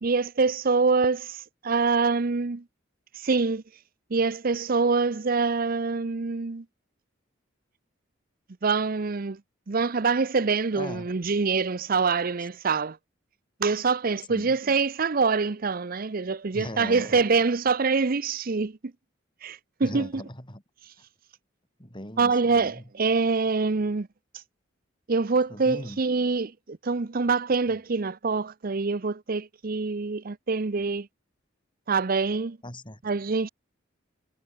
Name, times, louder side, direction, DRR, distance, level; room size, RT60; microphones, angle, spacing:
voice 1, 0.0-2.6 3.1-3.6 4.1-6.6 8.6-9.4 9.7-13.0 13.6-18.8 19.4-20.2 22.2-24.1 24.3-24.4 25.1-31.1 31.9-32.6 33.0-33.5, right 4 dB, 45° right, 0.7 m, -25 dB
voice 2, 10.7-11.1 14.3-14.6 16.5-17.2 19.8-20.6 21.8-22.8 25.5-26.0 27.7-27.8 32.6-33.0, left 1 dB, 25° left, 7.6 m, -39 dB
head